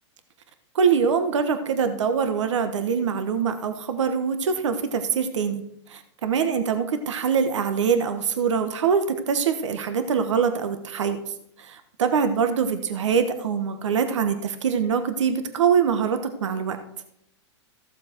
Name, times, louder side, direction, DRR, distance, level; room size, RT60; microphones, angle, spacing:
voice 1, 0.7-5.6 5.9-11.2 11.6-16.8, right 6 dB, 80° right, 8 dB, 1.2 m, -24 dB
15.0 x 7.3 x 4.4 m, 0.77 s
hypercardioid pair, 125°, 15 cm